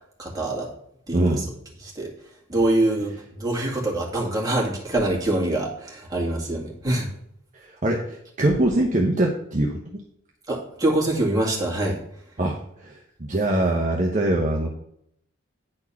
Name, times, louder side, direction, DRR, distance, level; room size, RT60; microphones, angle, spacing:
voice 1, 0.2-0.7 1.1-1.4 1.8-2.1 2.5-7.1 10.5-12.0, right 1 dB, 15° right, -3 dB, 2.2 m, -24 dB
voice 2, 1.1-1.5 7.5-10.0 12.4-14.7, right 1 dB, 35° right, 0 dB, 0.9 m, -23 dB
9.7 x 4.4 x 5.7 m, 0.72 s
head